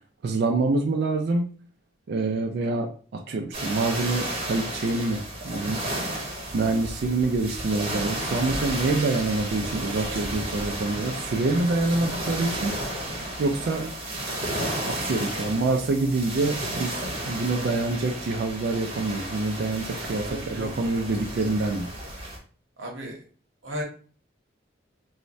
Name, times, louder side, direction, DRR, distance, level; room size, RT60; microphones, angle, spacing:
voice 1, 0.2-1.5 2.1-5.9 6.5-12.8 13.4-13.9 14.6-21.9, right 3 dB, 55° right, 3 dB, 0.3 m, -26 dB
sound 1, 3.5-22.4, right 1 dB, 30° right, 0.8 m, -33 dB
voice 2, 20.2-20.7 22.8-23.2 23.6-23.8, equal, 75° right, 0 dB, 0.9 m, -34 dB
3.1 x 2.1 x 2.5 m, 0.41 s
head